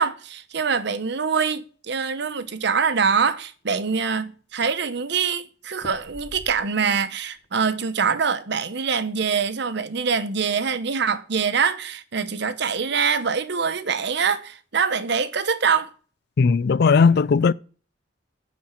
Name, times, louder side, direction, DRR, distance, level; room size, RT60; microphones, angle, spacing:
voice 1, 0.0-15.9, right 6 dB, 65° right, 0.8 m, -24 dB
sound 1, 1.9-2.8 3.3-3.4 3.6-4.3 5.8-7.0 7.4-7.8, equal, 30° left, 1.1 m, -45 dB
voice 2, 16.4-17.5, left 5 dB, 60° left, 0.4 m, -17 dB
10.5 x 4.3 x 7.3 m
head